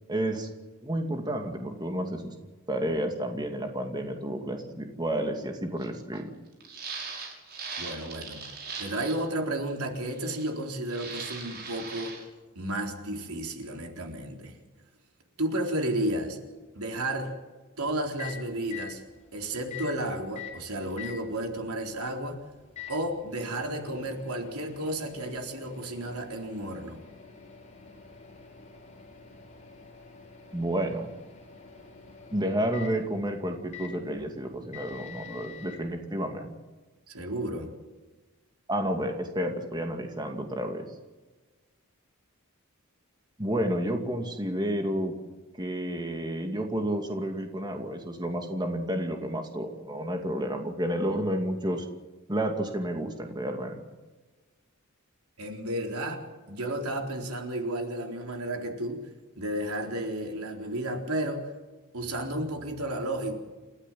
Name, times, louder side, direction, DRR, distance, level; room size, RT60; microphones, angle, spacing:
voice 1, 0.1-0.5 0.8-2.3 2.7-6.3 30.5-31.1 32.3-36.5 38.7-40.9 43.4-45.1 45.6-51.9 52.3-53.8, right 1 dB, 20° right, 4 dB, 2.4 m, -30 dB
sound 1, 5.8-5.9 6.1-6.2 6.6-9.2 10.1-10.6 10.9-12.2, right 4 dB, 45° right, 6.3 m, -39 dB
voice 2, 7.8-8.5 8.8-12.1 12.6-14.6 15.4-16.4 16.7-17.3 17.8-19.0 19.3-22.4 22.9-27.0 37.1-37.7 55.4-59.1 59.4-61.5 61.9-63.4, right 1 dB, 90° right, 2 dB, 4.1 m, -32 dB
Microwave oven, 17.8-35.8, left 7 dB, 30° left, 4.9 m, -47 dB
29.0 x 15.0 x 7.6 m, 1.2 s
head